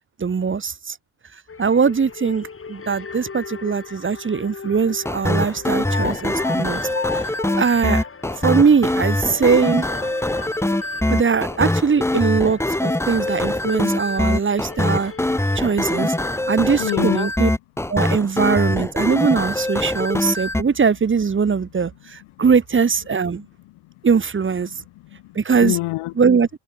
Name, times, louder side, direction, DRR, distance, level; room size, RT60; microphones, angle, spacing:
voice 1, 0.2-1.0 1.6-6.8 7.1-7.2 7.6-8.0 8.4-9.9 11.1-15.1 15.6-16.1 16.5-17.5 17.9-23.4 24.0-24.7 25.4-25.8 26.2-26.5, right 5 dB, 25° right, 1.8 m, -20 dB
sound 1, 1.5-16.4, left 5 dB, 25° left, 7.1 m, -36 dB
sound 2, 5.1-20.6, left 1 dB, 5° left, 2.8 m, -23 dB
voice 2, 16.8-17.3 20.4-20.7 22.2-22.4 23.4-23.9 24.7-26.1, left 20 dB, 90° left, 3.2 m, -29 dB
cardioid pair, 120°, 47 cm